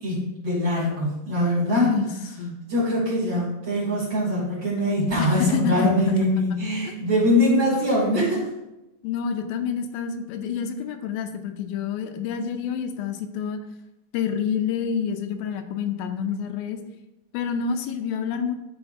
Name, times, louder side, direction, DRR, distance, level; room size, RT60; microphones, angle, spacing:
voice 1, 0.0-1.9 2.7-8.5, left 1 dB, 35° right, -7 dB, 3.1 m, -23 dB
voice 2, 1.7-2.1 2.4-2.6 5.2-6.6 6.9-7.0 9.0-13.6 14.1-16.8 17.3-18.6, left 7 dB, 85° left, 6 dB, 2.4 m, -28 dB
10.5 x 5.6 x 2.6 m, 0.96 s
omnidirectional pair, 4.2 m